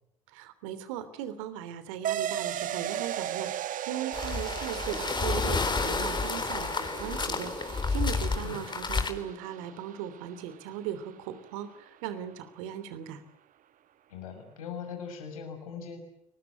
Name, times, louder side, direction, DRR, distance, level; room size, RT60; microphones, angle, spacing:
voice 1, 0.3-13.2, right 10 dB, 75° right, 13 dB, 3.1 m, -38 dB
sound 1, 2.0-11.1, right 11 dB, 50° right, 1.3 m, -37 dB
sound 2, 4.1-9.1, left 4 dB, 25° left, 3.8 m, -30 dB
voice 2, 14.1-16.0, left 6 dB, 80° left, 5 dB, 6.3 m, -40 dB
30.0 x 21.0 x 8.0 m, 0.79 s
hypercardioid pair, 60°, 18 cm